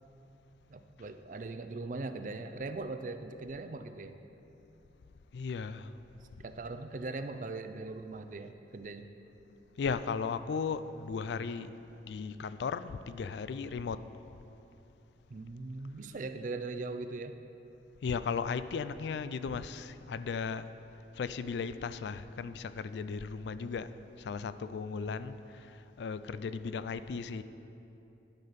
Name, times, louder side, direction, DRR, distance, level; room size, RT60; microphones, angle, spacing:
voice 1, 0.7-4.2 6.4-9.1 15.3-17.4, right 3 dB, 45° right, 8 dB, 0.4 m, -40 dB
voice 2, 5.3-5.9 9.8-11.7 12.1-14.0 18.0-20.7 21.1-23.9 24.2-27.4, left 5 dB, 70° left, 13 dB, 0.3 m, -36 dB
10.5 x 5.6 x 5.7 m, 2.9 s
head